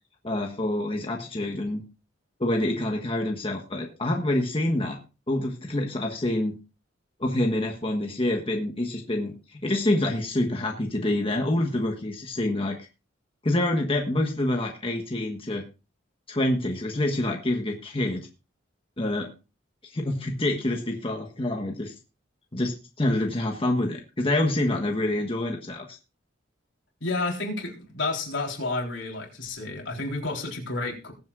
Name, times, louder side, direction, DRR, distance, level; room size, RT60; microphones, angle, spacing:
voice 1, 0.2-1.8 2.4-5.0 5.3-6.6 7.2-12.9 13.4-15.6 16.3-18.3 19.0-19.3 19.9-21.9 22.5-26.0, left 1 dB, 30° left, 2 dB, 1.3 m, -27 dB
voice 2, 27.0-31.1, left 2 dB, 70° left, 0 dB, 3.8 m, -30 dB
21.0 x 7.8 x 2.5 m, 0.30 s
head